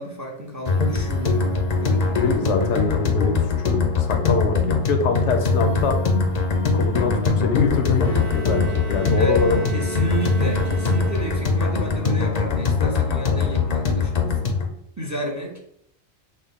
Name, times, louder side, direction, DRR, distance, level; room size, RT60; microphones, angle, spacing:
voice 1, 0.0-2.5 9.2-9.4 9.7-14.6 15.0-15.6, right 1 dB, 20° right, 0 dB, 0.5 m, -31 dB
sound 1, 0.7-14.7, left 4 dB, 45° left, 0.6 m, -22 dB
voice 2, 2.2-6.0 6.7-9.6, left 4 dB, 85° left, 5 dB, 1.0 m, -24 dB
Bowed string instrument, 8.0-11.8, right 5 dB, 75° right, 1.0 m, -35 dB
6.1 x 2.1 x 3.6 m, 0.72 s
omnidirectional pair, 1.2 m